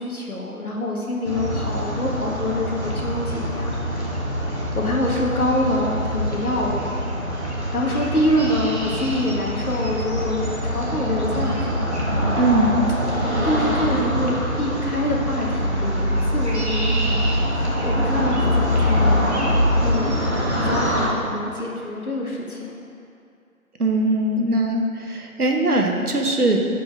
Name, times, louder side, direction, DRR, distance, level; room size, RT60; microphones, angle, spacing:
voice 1, 0.0-4.1 4.7-7.0 7.7-12.0 13.4-19.4 19.8-20.2 20.6-22.8, left 1 dB, 75° left, -2 dB, 1.5 m, -26 dB
sound 1, 1.2-21.1, equal, 50° right, 1.2 m, -24 dB
voice 2, 12.3-12.8 23.8-26.6, right 1 dB, 85° right, 2 dB, 1.1 m, -21 dB
5.6 x 5.3 x 5.7 m, 2.4 s
figure-of-eight pair, 180°, 44 cm